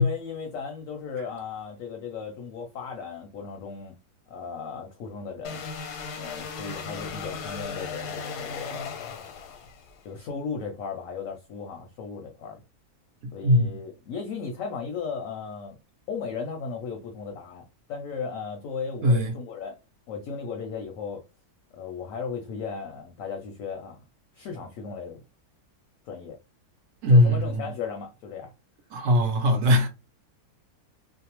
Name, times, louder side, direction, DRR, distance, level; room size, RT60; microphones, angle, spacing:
voice 1, 0.0-3.9 4.3-5.6 6.2-9.1 10.0-12.6 13.3-15.8 16.1-19.8 20.1-21.2 21.7-24.0 24.3-25.2 26.1-26.4 27.1-28.5, left 5 dB, 70° left, 0.8 m, -36 dB
sound 1, 5.4-10.0, left 5 dB, 90° left, 1.2 m, -36 dB
voice 2, 13.4-13.8 19.0-19.3 27.0-27.7 28.9-29.9, left 1 dB, 65° right, 0.8 m, -20 dB
2.6 x 2.0 x 2.9 m
omnidirectional pair, 1.7 m